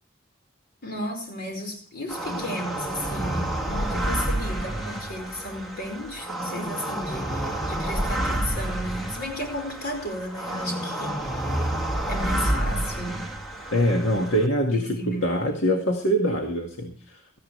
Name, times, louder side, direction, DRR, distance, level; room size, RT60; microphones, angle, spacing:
voice 1, 0.8-11.6 12.1-13.3 14.7-15.4, left 1 dB, 55° left, 5.0 m, -34 dB
sound 1, 2.1-14.5, right 1 dB, ahead, 2.4 m, -29 dB
voice 2, 13.7-17.4, equal, 75° left, 2.0 m, -24 dB
17.5 x 15.0 x 3.3 m
head